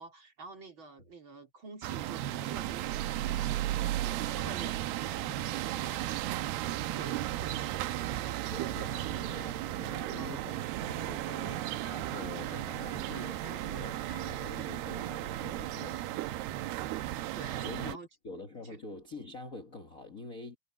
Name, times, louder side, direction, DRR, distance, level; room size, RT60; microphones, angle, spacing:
voice 1, 0.0-3.4 4.0-8.7 10.2-10.5 17.4-18.1 18.7-18.8, right 5 dB, 35° right, 4.0 m, -48 dB
sound 1, 1.8-18.0, right 14 dB, 85° right, 2.8 m, -35 dB
voice 2, 8.5-16.3 17.6-18.0 18.2-20.6, left 3 dB, 60° left, 0.8 m, -46 dB
Electric guitar, 11.5-17.1, left 8 dB, 80° left, 5.7 m, -55 dB
omnidirectional pair, 4.4 m